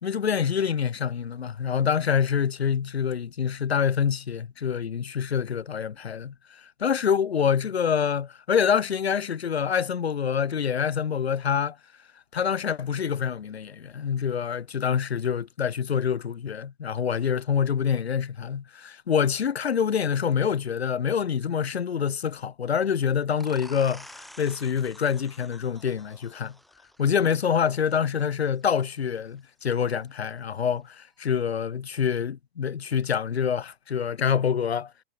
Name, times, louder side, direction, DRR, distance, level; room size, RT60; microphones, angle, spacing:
voice 1, 0.0-11.8 12.3-26.5 27.0-34.9, left 7 dB, 85° left, 1.4 m, -26 dB
sound 1, 23.4-28.8, equal, ahead, 4.1 m, -49 dB
hypercardioid pair, 130°, 31 cm